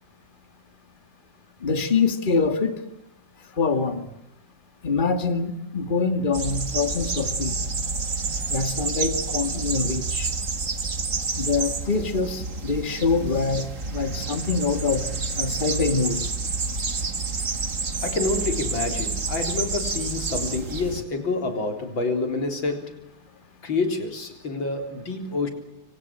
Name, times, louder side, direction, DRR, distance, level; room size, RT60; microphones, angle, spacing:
voice 1, 1.6-2.8 3.6-4.0 4.8-7.5 8.5-10.3 11.4-13.6 13.9-15.0 15.4-16.2, left 4 dB, 25° left, 8 dB, 2.3 m, -24 dB
sound 1, 6.3-21.0, right 4 dB, 40° right, 2.3 m, -29 dB
voice 2, 18.0-22.9 23.6-25.5, left 3 dB, 85° left, 5 dB, 4.5 m, -27 dB
26.5 x 25.0 x 7.6 m, 0.87 s
omnidirectional pair, 2.1 m